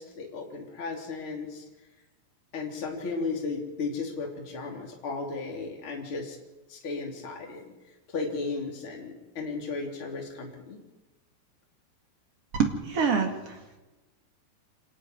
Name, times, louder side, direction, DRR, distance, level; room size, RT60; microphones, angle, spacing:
voice 1, 0.0-1.6 2.5-6.4 6.7-7.6 8.1-10.8, left 4 dB, 30° left, 0 dB, 4.1 m, -35 dB
voice 2, 12.6-13.8, right 6 dB, 45° right, 3 dB, 2.3 m, -26 dB
26.5 x 12.0 x 9.6 m, 1.1 s
omnidirectional pair, 5.1 m